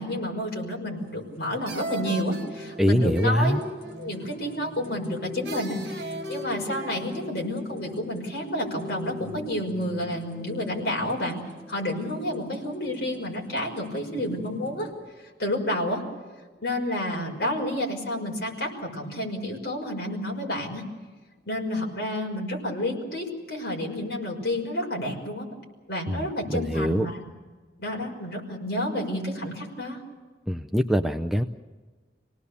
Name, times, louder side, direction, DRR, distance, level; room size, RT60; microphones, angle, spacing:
voice 1, 0.0-3.6 4.0-11.4 11.7-14.9 15.4-16.0 16.6-20.8 21.5-25.5 25.9-27.2 27.8-30.0, left 1 dB, 55° left, 0 dB, 5.9 m, -30 dB
sound 1, 0.9-1.3 1.7-4.7 5.4-7.3, right 3 dB, 60° right, 1.8 m, -39 dB
sound 2, 1.0-14.9, left 1 dB, 35° left, 4.6 m, -42 dB
voice 2, 2.8-3.6 26.1-27.1 30.5-31.4, equal, ahead, 6 dB, 0.6 m, -24 dB
27.5 x 18.5 x 6.9 m, 1.4 s
head